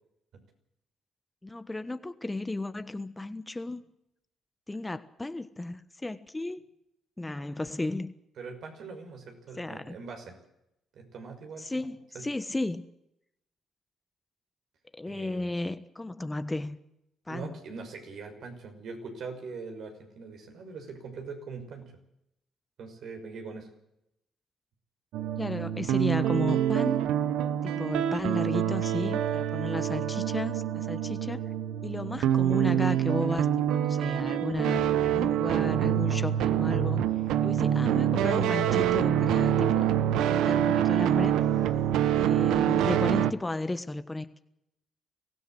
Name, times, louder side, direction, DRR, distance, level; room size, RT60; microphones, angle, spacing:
voice 1, 1.4-3.8 4.7-6.6 7.2-8.1 9.6-10.0 11.6-12.8 15.0-16.8 17.3-17.5 25.4-27.1 27.6-31.4 31.8-37.0 37.4-40.0 40.3-41.3 42.1-44.4, left 2 dB, 15° left, 11 dB, 1.3 m, -34 dB
voice 2, 8.4-10.4 10.9-11.9 12.1-12.2 15.0-15.5 17.3-21.9 22.8-23.7, right 4 dB, 70° right, 4 dB, 6.0 m, -42 dB
sound 1, 25.1-43.3, right 10 dB, 90° right, 1.0 m, -26 dB
23.5 x 16.0 x 7.8 m, 0.81 s
cardioid pair, 90°, 0 cm